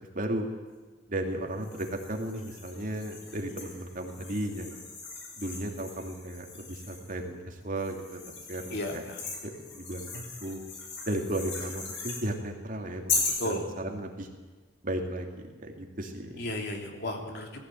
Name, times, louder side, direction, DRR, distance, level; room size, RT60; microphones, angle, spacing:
voice 1, 0.1-0.5 1.1-4.8 5.4-9.0 9.4-10.6 11.1-13.1 13.4-14.3 14.8-16.4, right 1 dB, 45° right, 2 dB, 2.6 m, -35 dB
sound 1, 1.6-7.2 7.8-12.2 13.1-13.5, left 4 dB, 80° left, 5.3 m, -38 dB
voice 2, 8.7-9.2 13.4-13.6 16.4-17.6, left 1 dB, 60° left, 2 dB, 3.2 m, -34 dB
19.0 x 15.0 x 9.2 m, 1.4 s
head